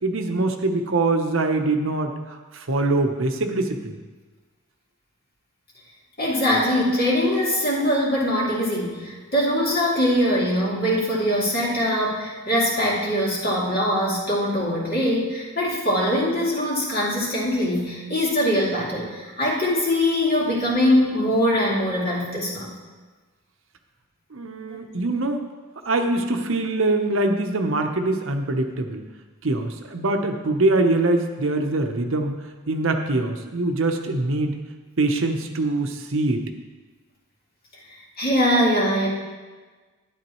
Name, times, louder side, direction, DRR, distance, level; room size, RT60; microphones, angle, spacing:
voice 1, 0.0-4.0 24.3-25.4 25.8-29.0 29.4-32.3 32.7-34.5 35.0-36.5, right 2 dB, 65° right, 5 dB, 0.9 m, -23 dB
voice 2, 6.2-22.7 24.7-24.8 38.2-39.1, equal, 45° left, -6 dB, 2.7 m, -22 dB
12.0 x 10.5 x 3.1 m, 1.3 s
head